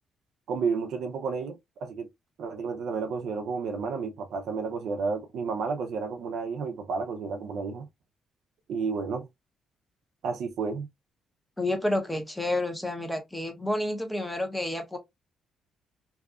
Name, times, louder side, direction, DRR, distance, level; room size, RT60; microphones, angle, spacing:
voice 1, 0.5-2.1 2.4-7.9 8.7-9.3 10.2-10.9, right 5 dB, 75° right, 0.4 m, -31 dB
voice 2, 11.6-15.0, left 1 dB, 5° left, 0.8 m, -29 dB
2.7 x 2.3 x 2.3 m
cardioid pair, 90°, 0 cm